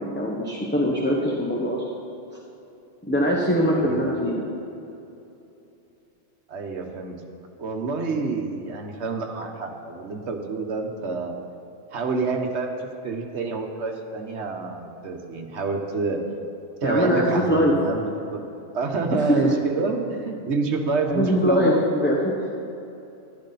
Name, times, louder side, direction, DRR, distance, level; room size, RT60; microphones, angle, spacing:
voice 1, 0.0-1.8 3.0-4.5 16.8-17.7 19.1-19.4 21.1-22.3, equal, 10° left, -3 dB, 1.1 m, -22 dB
voice 2, 3.7-4.2 6.5-7.2 7.6-11.3 11.9-16.2 16.8-18.4 18.7-21.8, right 3 dB, 70° right, 3 dB, 1.4 m, -28 dB
14.0 x 11.5 x 4.1 m, 2.9 s
omnidirectional pair, 1.2 m